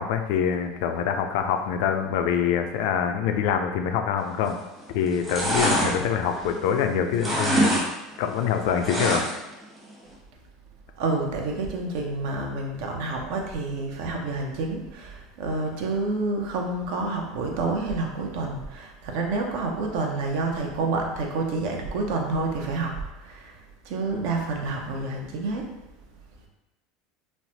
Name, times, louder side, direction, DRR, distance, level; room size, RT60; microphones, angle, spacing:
voice 1, 0.0-4.6 4.9-7.8 8.2-9.2, left 7 dB, 70° left, 6 dB, 0.3 m, -25 dB
sound 1, 4.4-4.8 5.1-6.8 7.1-7.9 8.1-9.5 9.9-10.0, equal, 20° right, 0.9 m, -25 dB
voice 2, 11.0-23.6 23.8-25.7, right 3 dB, 70° right, 1 dB, 0.5 m, -29 dB
3.2 x 2.0 x 2.8 m, 0.98 s
supercardioid pair, 110°, 0 cm